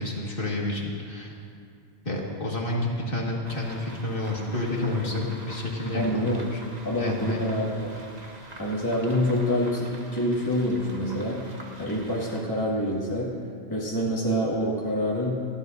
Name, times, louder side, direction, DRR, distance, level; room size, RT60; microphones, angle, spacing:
voice 1, 0.0-1.3 2.0-6.6 7.0-7.5, left 2 dB, 50° left, -3 dB, 2.1 m, -30 dB
sound 1, 3.4-12.4, right 1 dB, 35° right, 1.4 m, -45 dB
voice 2, 5.9-6.4 6.8-7.9 8.6-11.4 11.8-13.3 13.7-15.4, equal, 20° left, -6 dB, 2.1 m, -26 dB
28.5 x 11.5 x 2.7 m, 2.4 s
omnidirectional pair, 1.2 m